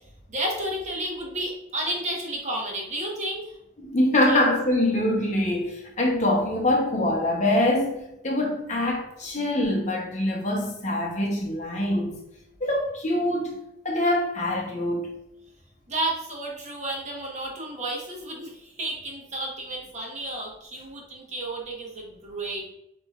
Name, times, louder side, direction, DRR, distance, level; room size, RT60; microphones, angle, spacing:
voice 1, 0.3-3.6 4.3-4.4 15.9-22.7, right 1 dB, 40° right, 1.2 m, -32 dB
voice 2, 3.8-12.1 12.6-13.6 13.8-15.1, left 1 dB, 40° left, 0.9 m, -24 dB
7.3 x 3.0 x 2.4 m
head